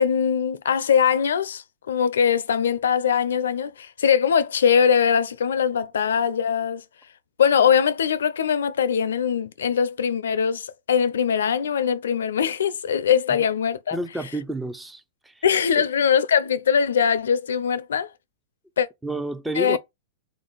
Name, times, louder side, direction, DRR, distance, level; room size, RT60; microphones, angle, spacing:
voice 1, 0.0-6.8 7.4-14.0 15.4-18.1 18.8-18.9 19.6-19.8, left 7 dB, 85° left, 0.4 m, -21 dB
voice 2, 13.9-15.4 15.8-15.9 19.0-19.8, right 1 dB, 5° right, 0.4 m, -30 dB
3.7 x 2.5 x 3.8 m
hypercardioid pair, 125°, 0 cm